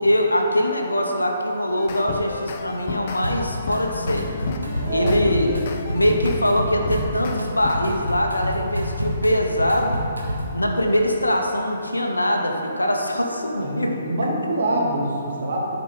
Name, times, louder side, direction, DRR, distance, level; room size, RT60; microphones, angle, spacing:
voice 1, 0.0-4.3 4.9-5.5 5.9-10.0 10.5-14.0, equal, 85° left, 2 dB, 1.0 m, -22 dB
sound 1, 1.8-3.2 3.7-6.4 6.8-7.8, left 5 dB, 40° left, 0.6 m, -32 dB
Drum kit, 3.2-3.8 4.1-10.6, equal, 90° right, 1.3 m, -28 dB
voice 2, 4.7-5.2 13.5-15.7, right 1 dB, 55° right, -3 dB, 1.8 m, -25 dB
11.5 x 4.9 x 3.9 m, 2.8 s
figure-of-eight pair, 130°, 0 cm